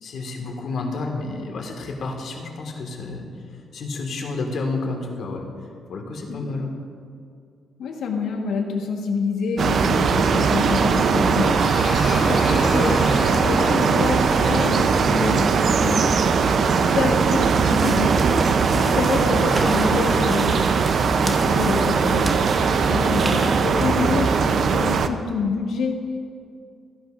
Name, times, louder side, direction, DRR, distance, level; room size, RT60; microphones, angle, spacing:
voice 1, 0.0-3.3 3.7-5.5 5.9-6.7, left 3 dB, 65° left, 1 dB, 1.7 m, -30 dB
voice 2, 7.8-11.8 12.0-13.1 13.4-16.1 16.6-18.2 18.7-20.7 21.2-25.9, left 4 dB, 85° left, 1 dB, 1.3 m, -27 dB
sound 1, 9.6-25.1, right 5 dB, 60° right, 0.5 m, -20 dB
sound 2, 11.6-16.3, left 4 dB, 50° left, 0.7 m, -33 dB
sound 3, 17.4-23.7, right 1 dB, 20° right, 1.0 m, -34 dB
15.0 x 10.5 x 2.5 m, 2.3 s
cardioid pair, 100°, 0 cm